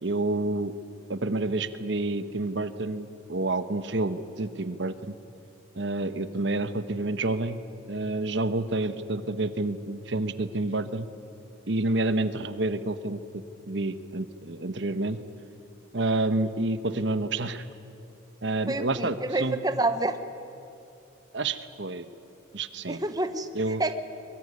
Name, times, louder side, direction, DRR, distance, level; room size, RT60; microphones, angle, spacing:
voice 1, 0.0-0.7 1.1-5.2 5.8-7.6 7.9-11.1 11.7-13.2 13.7-15.2 15.9-17.6 18.4-19.6 21.3-22.1 22.5-23.0 23.5-23.8, right 2 dB, 60° right, 12 dB, 1.1 m, -29 dB
voice 2, 18.7-20.2 22.9-23.9, right 2 dB, 20° right, 9 dB, 1.0 m, -28 dB
22.5 x 22.0 x 9.6 m, 2.7 s
head